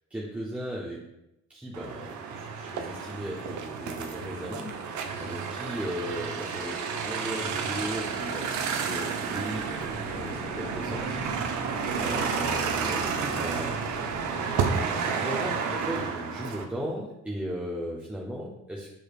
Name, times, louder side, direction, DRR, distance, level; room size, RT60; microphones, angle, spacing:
voice 1, 0.1-1.0 1.5-14.2 14.7-18.9, equal, 5° right, -3 dB, 0.7 m, -37 dB
sound 1, 1.7-16.6, right 6 dB, 75° right, 0.6 m, -31 dB
sound 2, 9.5-14.9, left 3 dB, 45° left, 0.7 m, -43 dB
6.8 x 3.1 x 2.4 m, 0.88 s
cardioid pair, 90°, 30 cm